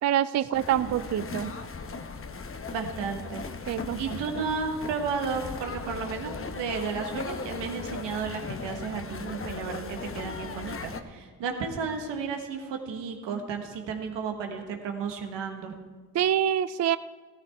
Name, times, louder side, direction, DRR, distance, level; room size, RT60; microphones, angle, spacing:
voice 1, 0.0-1.6 3.7-4.4 16.1-17.0, right 10 dB, 40° right, 15 dB, 0.4 m, -26 dB
sound 1, 0.5-11.0, left 4 dB, 30° left, 0.9 m, -38 dB
voice 2, 2.7-3.4 4.0-15.8, right 5 dB, 85° right, 4 dB, 1.4 m, -33 dB
14.5 x 12.5 x 3.5 m, 1.5 s
supercardioid pair, 50°, 42 cm